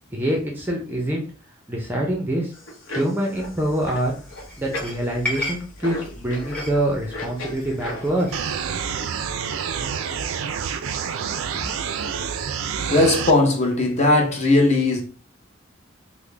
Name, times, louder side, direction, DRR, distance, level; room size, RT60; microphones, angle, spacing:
voice 1, 0.1-1.3 1.7-2.5 2.9-4.1 4.6-8.4, right 1 dB, 10° right, 0.5 m, -25 dB
sound 1, 2.5-8.2, left 1 dB, 65° left, 0.8 m, -36 dB
sound 2, 3.4-8.6, left 1 dB, 5° left, 0.9 m, -36 dB
sound 3, 8.3-13.3, right 7 dB, 80° right, 0.4 m, -28 dB
voice 2, 12.9-15.0, left 2 dB, 30° left, 0.7 m, -18 dB
3.7 x 2.1 x 3.3 m
head